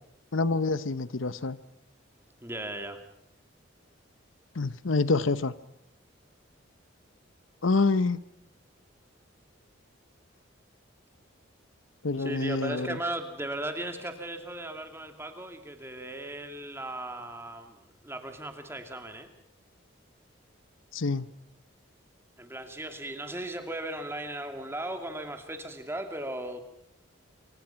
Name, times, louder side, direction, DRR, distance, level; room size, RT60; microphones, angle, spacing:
voice 1, 0.3-1.6 4.6-5.5 7.6-8.2 12.0-13.0 20.9-21.3, left 3 dB, 80° left, 0.8 m, -26 dB
voice 2, 2.4-3.0 12.2-19.3 22.4-26.6, right 1 dB, 10° right, 2.5 m, -37 dB
28.0 x 25.0 x 5.8 m
head